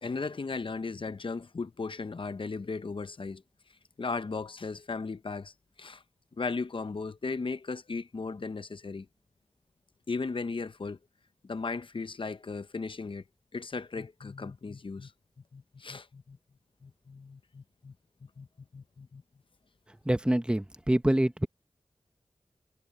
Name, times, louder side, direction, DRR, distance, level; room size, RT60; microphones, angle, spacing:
voice 1, 0.0-3.4 4.0-5.5 5.8-6.0 6.4-9.1 10.1-11.0 11.4-13.2 13.5-15.1 15.5-16.4 16.8-17.9 18.4-18.5 18.7-19.2, left 4 dB, 55° left, 0.8 m, -36 dB
voice 2, 20.1-21.5, right 1 dB, 10° right, 0.9 m, -26 dB
wide cardioid pair, 55°, 10 cm